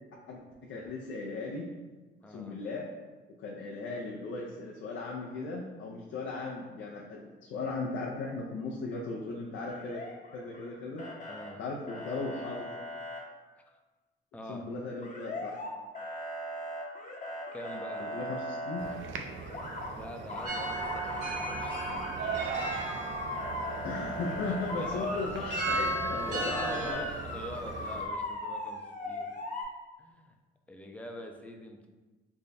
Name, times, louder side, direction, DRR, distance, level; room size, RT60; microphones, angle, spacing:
voice 1, 0.3-1.7 2.3-2.9 3.4-10.0 10.3-11.1 11.6-12.7 14.5-15.6 18.0-18.9 23.8-27.0, left 3 dB, 75° left, -2 dB, 0.5 m, -37 dB
voice 2, 2.2-2.6 11.3-11.6 13.6-13.7 14.3-14.7 17.5-18.1 19.9-22.2 22.4-23.0 24.8-25.1 26.2-29.3 30.0-30.3 30.7-31.9, left 1 dB, 5° left, 3 dB, 0.4 m, -44 dB
Motor vehicle (road) / Siren, 9.7-10.7 11.0-11.5 11.9-13.2 15.0-15.7 15.9-18.9 19.4-19.9 20.3-29.6, left 1 dB, 40° left, 0.8 m, -39 dB
sound 1, 18.8-28.1, right 5 dB, 75° right, 0.5 m, -41 dB
sound 2, 20.5-26.9, right 2 dB, 60° right, 1.3 m, -36 dB
3.4 x 2.2 x 4.0 m, 1.3 s
cardioid pair, 90°, 20 cm